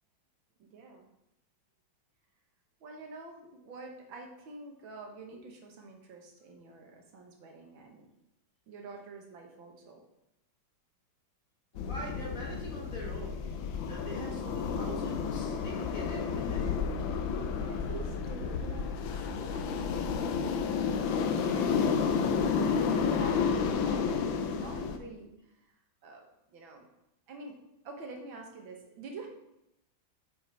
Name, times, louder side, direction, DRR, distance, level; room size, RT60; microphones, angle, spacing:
voice 1, 0.6-1.1 2.8-8.1 8.7-10.0 17.5-26.9 27.3-27.6 27.8-29.3, right 3 dB, 75° right, 2 dB, 1.9 m, -47 dB
sound 1, 11.7-25.0, left 6 dB, 75° left, 1.4 m, -31 dB
voice 2, 11.7-13.4 13.9-16.8, equal, 45° left, -3 dB, 2.1 m, -43 dB
7.3 x 5.2 x 4.4 m, 0.86 s
omnidirectional pair, 2.2 m